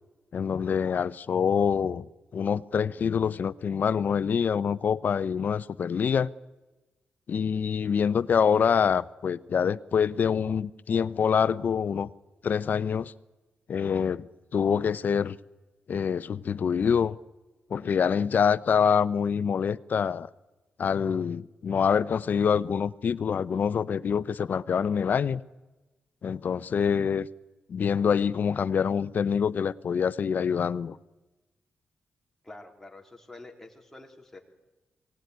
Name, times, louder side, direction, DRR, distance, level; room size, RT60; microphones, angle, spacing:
voice 1, 0.3-2.0 2.3-6.3 7.3-12.1 12.4-13.1 13.7-14.3 14.5-15.4 15.9-17.2 17.7-20.3 20.8-25.4 26.2-27.3 27.7-31.0, left 7 dB, 60° left, 0.7 m, -25 dB
voice 2, 32.4-34.4, left 2 dB, 10° left, 3.6 m, -47 dB
23.5 x 18.0 x 9.5 m
cardioid pair, 100°, 4 cm